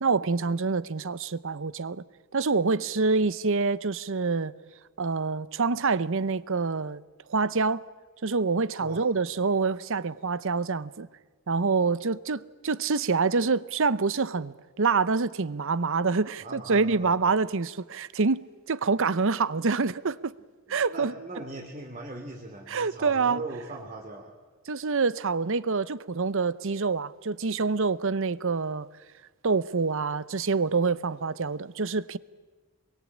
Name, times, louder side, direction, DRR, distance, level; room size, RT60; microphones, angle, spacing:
voice 1, 0.0-2.0 2.3-4.5 5.0-7.0 7.3-7.8 8.2-11.1 11.5-20.3 20.7-21.1 22.7-23.4 24.7-28.9 29.4-32.2, right 4 dB, 65° right, 0.8 m, -26 dB
voice 2, 16.4-17.2 20.4-24.3, right 2 dB, 35° right, 2.9 m, -40 dB
26.0 x 23.0 x 8.6 m
head